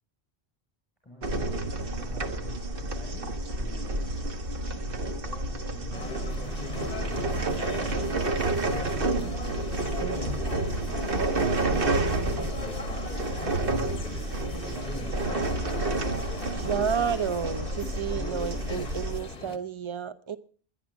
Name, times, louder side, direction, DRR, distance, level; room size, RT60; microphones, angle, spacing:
voice 1, 1.0-1.6 1.9-4.2 4.8-6.0 6.4-8.0 8.6-9.2 9.9-11.2 11.8-13.1 13.6-15.6, left 1 dB, 10° left, 6.0 m, -47 dB
sound 1, 1.2-19.2, right 2 dB, 60° right, 1.6 m, -30 dB
sound 2, 5.9-19.6, left 3 dB, 40° left, 1.2 m, -39 dB
voice 2, 10.0-10.4 16.5-20.4, right 7 dB, 30° right, 0.7 m, -31 dB
22.0 x 11.0 x 3.8 m
omnidirectional pair, 1.1 m